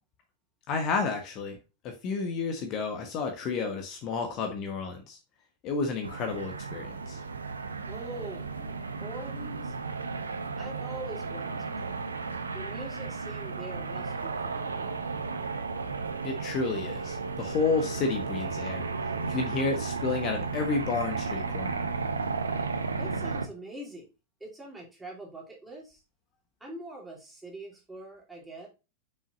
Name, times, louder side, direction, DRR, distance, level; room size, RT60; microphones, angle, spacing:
voice 1, 0.7-1.6 1.8-5.2 5.6-7.2 16.2-18.8 19.3-21.8, left 4 dB, 40° left, 4 dB, 1.3 m, -31 dB
sound 1, 6.0-23.5, right 4 dB, 75° right, 0.8 m, -34 dB
voice 2, 7.9-9.7 10.6-12.1 12.5-15.0 23.0-24.1 24.4-26.0 26.6-28.7, right 2 dB, 10° right, -2 dB, 3.2 m, -44 dB
7.1 x 5.9 x 2.6 m, 0.28 s
figure-of-eight pair, 90°, 0 cm